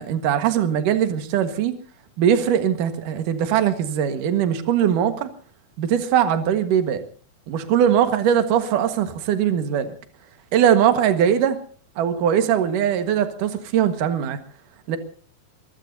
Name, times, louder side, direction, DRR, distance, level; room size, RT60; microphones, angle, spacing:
voice 1, 0.0-1.7 2.2-5.3 5.8-7.0 7.5-9.9 10.5-11.6 12.0-14.4 14.9-15.0, right 9 dB, 65° right, 8 dB, 3.0 m, -20 dB
22.5 x 22.5 x 2.7 m, 0.43 s
omnidirectional pair, 4.1 m